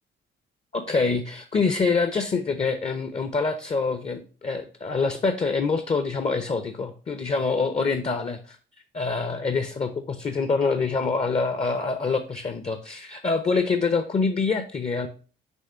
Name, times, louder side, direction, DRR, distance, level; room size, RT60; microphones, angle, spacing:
voice 1, 0.7-8.6 8.9-15.1, left 4 dB, 30° left, 9 dB, 0.7 m, -25 dB
6.3 x 3.0 x 5.6 m, 0.38 s
cardioid pair, 90°, 20 cm